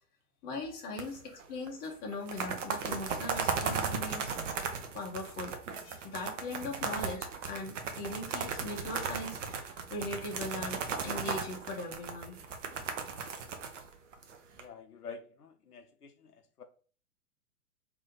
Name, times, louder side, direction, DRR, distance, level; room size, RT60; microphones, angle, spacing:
voice 1, 0.4-4.3 4.9-5.6 5.8-12.4, left 2 dB, 20° left, 0 dB, 1.0 m, -40 dB
sound 1, 1.0-1.4 1.7-1.8 2.1-14.6, right 5 dB, 50° right, 0.9 m, -36 dB
voice 2, 14.5-16.6, left 5 dB, 80° left, 7 dB, 0.7 m, -49 dB
3.2 x 2.9 x 3.8 m, 0.40 s
figure-of-eight pair, 110°, 46 cm